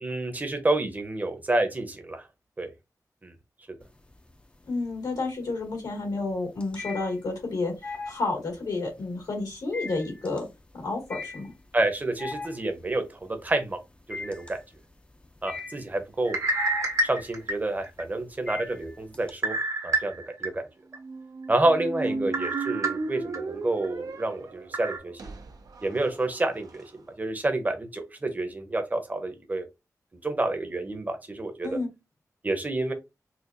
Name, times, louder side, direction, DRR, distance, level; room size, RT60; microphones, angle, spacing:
voice 1, 0.0-2.2 2.6-2.7 3.2-3.3 11.7-13.8 14.1-14.6 15.4-16.4 17.0-19.5 19.8-20.6 21.5-25.3 25.8-26.8 27.2-29.6 30.2-31.7 32.4-32.9, right 2 dB, 25° right, 6 dB, 0.8 m, -28 dB
sound 1, 3.8-4.5 4.8-19.3, left 3 dB, 20° left, 0.5 m, -40 dB
voice 2, 4.7-10.5 10.8-11.5 22.0-22.3 31.6-31.9, left 3 dB, 85° left, 1 dB, 1.9 m, -31 dB
sound 2, 16.2-18.0 18.5-18.6 19.4-20.5 20.9-21.0 22.3-23.4 23.8-23.9 24.7-25.0, right 2 dB, 60° right, 1.0 m, -28 dB
Squeak, 20.9-26.9, right 4 dB, 75° right, 0.6 m, -36 dB
4.2 x 2.4 x 2.6 m, 0.24 s
wide cardioid pair, 95°, 6 cm